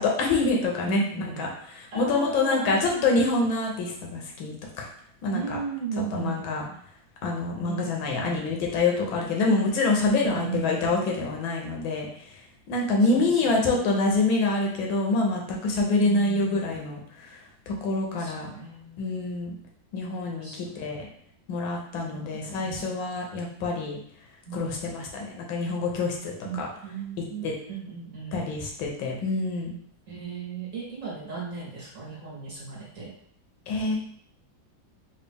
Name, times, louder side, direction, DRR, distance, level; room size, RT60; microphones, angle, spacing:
voice 1, 0.0-1.5 1.9-4.9 5.2-5.6 6.1-6.6 7.2-12.1 12.7-17.0 17.3-17.4 17.7-18.5 19.0-19.5 19.9-21.1 21.5-24.0 24.5-26.7 27.4-27.5 28.3-29.8 33.7-34.0, left 3 dB, 85° left, 0 dB, 1.6 m, -26 dB
voice 2, 0.8-1.5 1.9-3.1 5.3-6.7 7.6-8.4 10.2-11.0 13.1-14.0 16.0-16.9 18.1-19.0 20.4-20.9 22.1-22.9 24.5-25.1 26.4-26.6 26.8-28.4 30.1-33.1, right 5 dB, 50° right, -5 dB, 1.2 m, -37 dB
4.1 x 2.5 x 3.5 m, 0.63 s
omnidirectional pair, 2.1 m